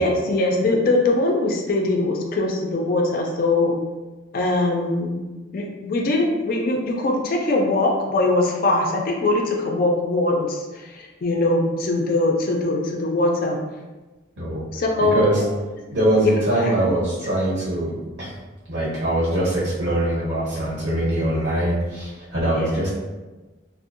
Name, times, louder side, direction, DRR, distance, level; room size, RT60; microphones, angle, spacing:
voice 1, 0.0-3.8 4.3-5.2 5.5-13.6 14.7-15.3 16.2-16.7 22.5-22.7, left 2 dB, 50° left, 0 dB, 0.3 m, -22 dB
voice 2, 15.1-15.4 15.9-17.9 18.2-18.3 18.7-22.9, right 1 dB, 60° right, -8 dB, 1.1 m, -22 dB
2.6 x 2.0 x 2.5 m, 1.2 s
head